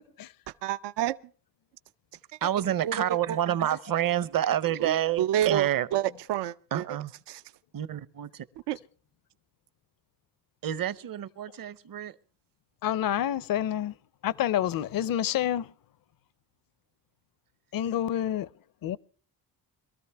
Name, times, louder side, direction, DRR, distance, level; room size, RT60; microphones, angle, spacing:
voice 1, 0.6-1.2 2.8-3.4 4.8-6.8 7.3-7.4 8.7-8.8, right 12 dB, 85° right, 0.6 m, -29 dB
voice 2, 2.4-5.9 6.7-7.1 7.7-8.5 10.6-12.2, right 11 dB, 55° right, 0.8 m, -28 dB
voice 3, 12.8-13.9 14.2-15.7 17.7-18.5 18.8-19.0, left 11 dB, 55° left, 0.6 m, -28 dB
22.5 x 13.5 x 3.4 m
cardioid pair, 105°, 41 cm